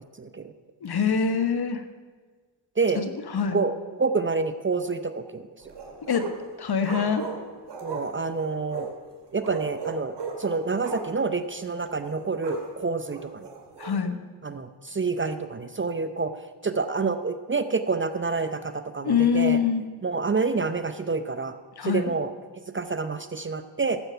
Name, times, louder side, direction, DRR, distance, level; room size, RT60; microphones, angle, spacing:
voice 1, 0.2-0.5 2.8-3.0 3.5-3.7 4.0-5.5 7.8-8.9 9.3-13.5 14.4-16.3 16.6-19.6 20.0-21.5 21.8-22.3 22.7-24.0, right 4 dB, 25° right, 10 dB, 0.7 m, -28 dB
voice 2, 0.8-1.8 2.9-3.6 6.1-6.2 6.6-7.2 13.8-14.2 19.0-19.8 21.8-22.1, left 6 dB, 50° left, 9 dB, 1.3 m, -24 dB
sound 1, 5.6-6.5 6.8-9.0 9.4-11.3 11.6-11.7 12.0-12.7 13.1-14.0, right 4 dB, 55° right, 2.7 m, -37 dB
12.5 x 7.9 x 5.7 m, 1.5 s
cardioid pair, 55°, 48 cm